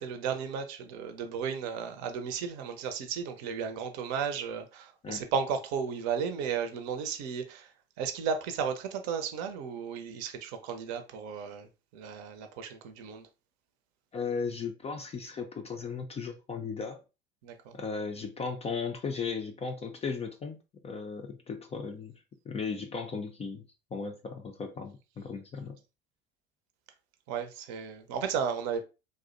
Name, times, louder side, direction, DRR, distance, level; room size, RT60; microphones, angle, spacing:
voice 1, 0.0-13.3 17.4-17.8 27.3-28.8, right 6 dB, 55° right, 0.6 m, -34 dB
voice 2, 14.1-17.0 17.7-20.6 20.8-22.1 22.5-23.6 23.9-25.8, left 5 dB, 20° left, 0.3 m, -36 dB
2.4 x 2.0 x 2.5 m
hypercardioid pair, 75°, 32 cm